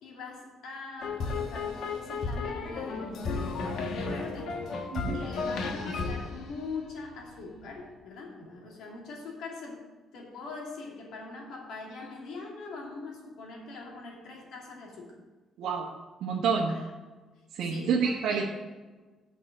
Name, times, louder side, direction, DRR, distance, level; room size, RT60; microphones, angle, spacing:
voice 1, 0.0-4.6 5.1-9.8 10.1-15.2 16.7-16.8 17.6-18.5, left 3 dB, 80° left, -1 dB, 2.5 m, -42 dB
sound 1, 1.0-7.3, left 4 dB, 60° left, 1.2 m, -33 dB
voice 2, 16.2-16.8 17.5-18.5, right 5 dB, 75° right, -2 dB, 1.2 m, -28 dB
8.8 x 5.8 x 7.6 m, 1.3 s
cardioid pair, 175°, 0 cm